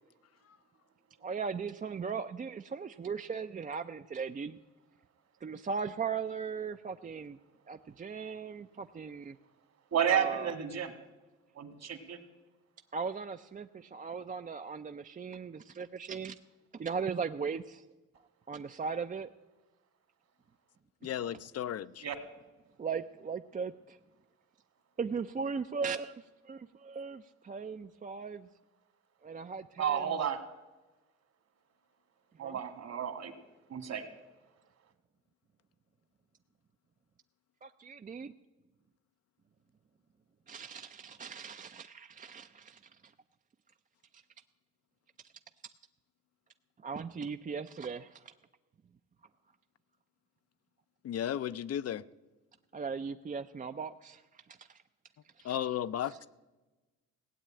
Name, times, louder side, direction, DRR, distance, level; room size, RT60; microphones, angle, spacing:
voice 1, 1.2-4.6 5.4-7.4 7.7-9.4 10.0-10.5 12.9-16.4 16.7-17.8 18.5-19.3 22.8-24.0 25.0-28.5 29.2-30.2 32.4-32.6 37.6-38.3 40.5-43.1 46.8-48.3 52.7-54.2 54.6-54.8 55.4-55.8 56.0-56.2, right 5 dB, 25° right, 8 dB, 0.5 m, -38 dB
voice 2, 9.9-10.9 11.6-12.2 22.0-22.2 29.8-30.4 32.4-33.3 33.7-34.0, right 8 dB, 60° right, 8 dB, 2.0 m, -31 dB
voice 3, 21.0-22.1 51.0-52.0 55.4-56.3, left 10 dB, 55° left, 15 dB, 0.5 m, -34 dB
16.5 x 8.2 x 8.8 m, 1.2 s
cardioid pair, 90°, 30 cm